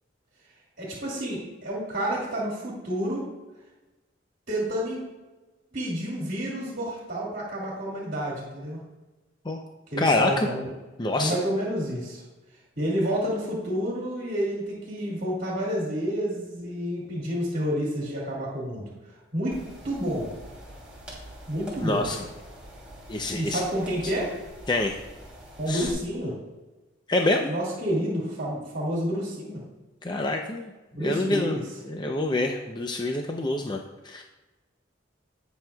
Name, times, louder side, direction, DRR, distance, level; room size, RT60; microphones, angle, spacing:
voice 1, 0.8-3.2 4.5-5.0 5.7-8.8 9.9-10.7 11.2-12.2 12.8-18.9 19.3-20.3 21.5-22.1 23.3-24.3 25.6-26.4 27.5-29.6 30.9-31.6, equal, 50° right, -4 dB, 2.3 m, -29 dB
voice 2, 10.0-10.5 11.0-11.4 21.8-22.2 23.1-23.6 24.7-25.0 25.7-25.9 27.1-27.5 30.0-30.7 31.0-31.6 31.8-33.8 34.0-34.2, left 2 dB, 25° left, 2 dB, 0.6 m, -26 dB
sound 1, 19.5-25.9, equal, 5° right, 2.8 m, -45 dB
18.0 x 6.2 x 2.3 m, 1.1 s
head